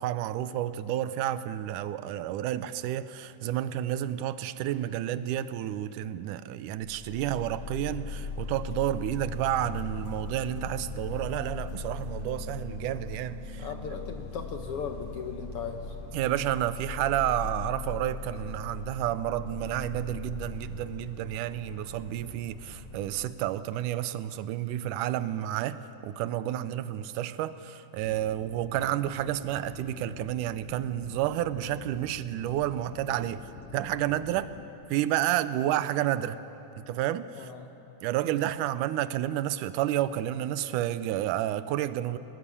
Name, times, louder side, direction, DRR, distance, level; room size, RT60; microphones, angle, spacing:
voice 1, 0.0-13.7 16.1-34.5 34.9-36.4 36.8-37.5 38.0-42.2, right 12 dB, 90° right, 2.2 m, -30 dB
sound 1, 6.8-23.3, left 4 dB, 45° left, 3.3 m, -39 dB
voice 2, 13.6-15.9 37.3-37.7, left 6 dB, 65° left, 1.5 m, -37 dB
sound 2, 28.0-34.7, left 6 dB, 85° left, 2.5 m, -47 dB
20.0 x 19.5 x 8.4 m
omnidirectional pair, 3.5 m